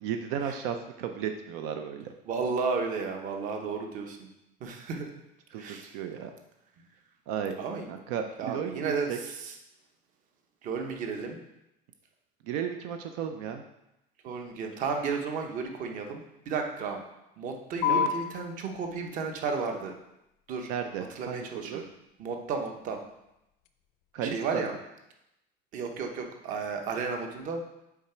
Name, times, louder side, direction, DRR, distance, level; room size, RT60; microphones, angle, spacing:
voice 1, 0.0-2.1 5.5-6.3 7.3-7.6 7.9-9.2 12.4-13.6 17.9-18.1 20.7-21.8 24.1-24.8, right 8 dB, 75° right, 6 dB, 0.6 m, -34 dB
voice 2, 2.2-4.3 4.6-5.1 5.6-5.9 7.6-7.9 8.4-9.1 9.4-9.5 10.6-11.4 14.2-16.2 16.5-17.0 17.4-19.9 20.5-20.7 21.2-21.9 22.2-23.0 24.2-24.7 25.7-27.6, right 5 dB, 40° right, 4 dB, 0.9 m, -33 dB
sound 1, 17.8-24.8, left 8 dB, 85° left, 0.6 m, -37 dB
7.2 x 4.9 x 4.4 m, 0.88 s
cardioid pair, 175°, 20 cm